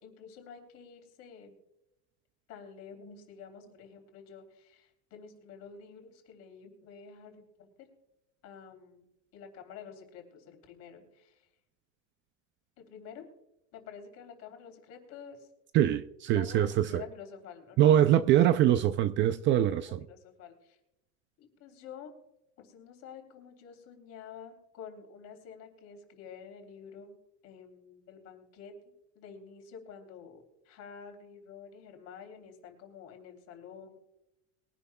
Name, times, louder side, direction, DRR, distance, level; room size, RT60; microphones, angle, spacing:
voice 1, 0.0-1.5 2.5-7.9 8.4-9.0 9.3-11.5 12.8-13.3 13.7-15.5 16.3-17.9 19.4-20.8 21.4-22.1 22.6-27.2 27.4-33.9, left 6 dB, 45° left, 3.3 m, -49 dB
voice 2, 15.7-17.0 17.8-20.0, right 11 dB, 35° right, 0.4 m, -23 dB
22.5 x 11.0 x 2.2 m
cardioid pair, 160°, 34 cm